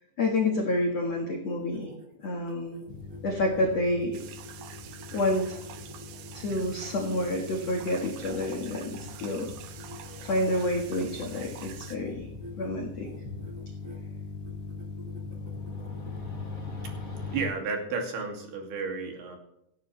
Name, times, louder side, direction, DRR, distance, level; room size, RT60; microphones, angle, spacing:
voice 1, 0.2-1.9 2.2-2.8 3.2-4.2 5.1-5.6 6.3-9.5 10.2-12.3 12.6-13.1, left 1 dB, 75° left, 1 dB, 1.5 m, -28 dB
sound 1, 1.4-9.3 9.7-11.4 11.8-12.1 12.4-12.7 13.0-14.0 14.4-16.2, equal, 35° right, 1.2 m, -48 dB
sound 2, 2.9-17.5, left 4 dB, 25° left, 5.2 m, -41 dB
sound 3, 4.1-12.0, right 10 dB, 90° right, 2.0 m, -47 dB
voice 2, 17.3-19.4, right 4 dB, 55° right, 2 dB, 4.2 m, -32 dB
17.0 x 14.0 x 3.3 m, 0.80 s
omnidirectional pair, 5.8 m